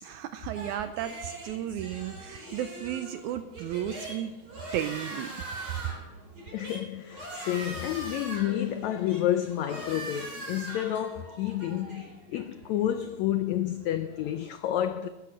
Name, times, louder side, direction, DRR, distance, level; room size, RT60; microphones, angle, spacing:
voice 1, 0.0-4.3 4.7-5.3, right 11 dB, 80° right, 1.7 m, -34 dB
sound 1, 0.5-14.5, right 1 dB, 30° right, 4.2 m, -42 dB
voice 2, 6.5-15.1, left 11 dB, 85° left, 1.6 m, -30 dB
15.0 x 10.0 x 6.3 m
omnidirectional pair, 3.9 m